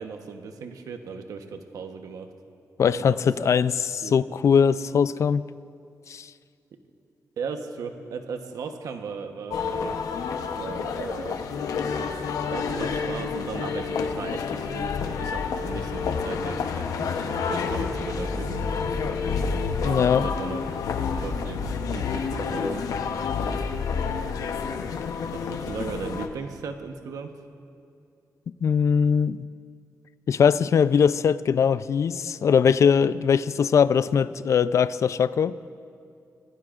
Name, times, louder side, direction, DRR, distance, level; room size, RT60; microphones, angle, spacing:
voice 1, 0.0-2.3 3.1-3.5 4.0-4.1 7.4-10.2 10.6-11.4 12.5-18.6 19.8-20.6 21.0-22.9 25.3-27.3, right 5 dB, 90° right, 6 dB, 1.0 m, -37 dB
voice 2, 2.8-5.4 6.1-6.3 19.8-20.3 28.6-29.4 30.3-35.5, left 7 dB, 60° left, 16 dB, 0.4 m, -21 dB
sound 1, 9.5-26.3, left 5 dB, 90° left, 0.8 m, -29 dB
24.5 x 16.5 x 2.5 m, 2.5 s
cardioid pair, 105°, 6 cm